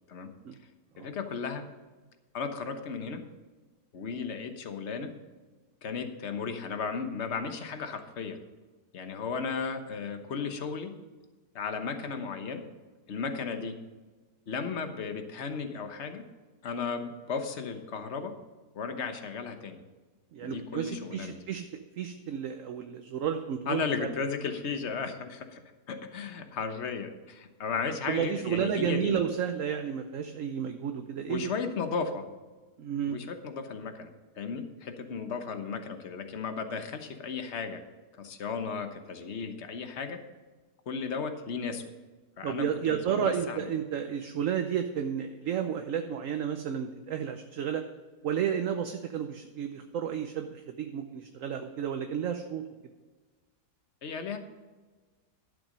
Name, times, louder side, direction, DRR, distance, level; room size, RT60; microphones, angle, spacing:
voice 1, 1.0-1.6 2.3-3.3 3.9-5.1 5.8-8.4 8.9-11.0 11.5-12.6 13.1-13.8 14.5-16.3 16.6-18.4 18.7-19.8 20.4-21.3 23.7-25.6 25.9-29.2 31.3-32.2 33.1-37.8 38.2-40.2 40.9-41.9 42.4-43.7 54.0-54.4, left 5 dB, 45° left, 7 dB, 1.2 m, -35 dB
voice 2, 20.3-21.7 22.0-24.1 28.1-31.5 32.8-33.2 42.4-47.8 48.2-52.6, right 8 dB, 60° right, 6 dB, 1.0 m, -32 dB
12.0 x 7.4 x 5.2 m, 1.3 s
omnidirectional pair, 1.8 m